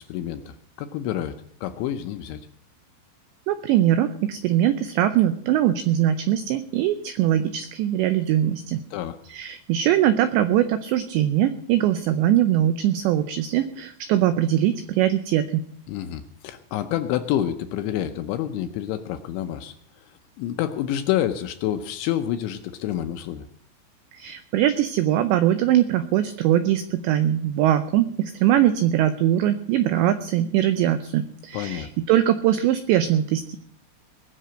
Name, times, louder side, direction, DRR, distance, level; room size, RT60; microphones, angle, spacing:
voice 1, 0.0-1.4 1.6-2.4 8.9-9.2 15.9-19.7 20.4-23.4 31.5-31.9, left 11 dB, 80° left, 9 dB, 2.8 m, -28 dB
voice 2, 3.5-8.8 9.3-15.6 24.1-33.6, right 12 dB, 90° right, 11 dB, 2.5 m, -21 dB
20.5 x 6.8 x 7.6 m, 0.66 s
omnidirectional pair, 5.9 m